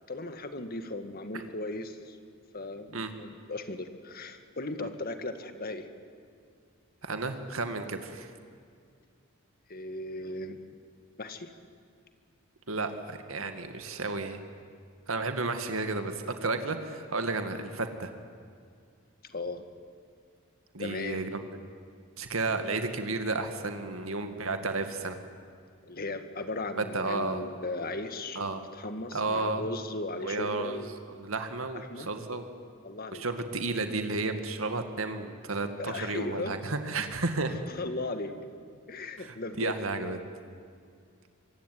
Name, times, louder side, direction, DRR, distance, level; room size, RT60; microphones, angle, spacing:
voice 1, 0.1-2.2 2.5-5.8 9.7-10.6 11.2-11.5 19.3-19.6 20.8-21.3 25.8-31.0 31.9-32.1 32.8-33.2 35.8-36.5 37.7-38.3 38.9-40.2, left 2 dB, 45° left, 8 dB, 1.9 m, -37 dB
voice 2, 7.0-8.3 12.7-14.4 15.1-18.1 20.7-21.5 22.2-25.2 26.8-27.4 28.4-28.6 29.1-29.6 30.2-30.8 31.2-32.4 33.1-37.6 39.2-40.2, right 3 dB, 80° right, 7 dB, 2.2 m, -32 dB
24.5 x 23.5 x 9.5 m, 2.3 s
head